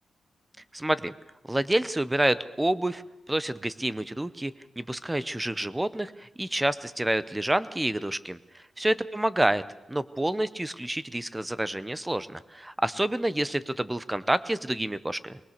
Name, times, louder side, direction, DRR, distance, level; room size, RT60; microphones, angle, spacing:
voice 1, 0.7-1.1 1.5-3.0 3.3-9.6 9.9-15.4, right 1 dB, 10° right, 15 dB, 0.8 m, -28 dB
23.5 x 20.0 x 6.7 m, 0.95 s
wide cardioid pair, 125°, 0 cm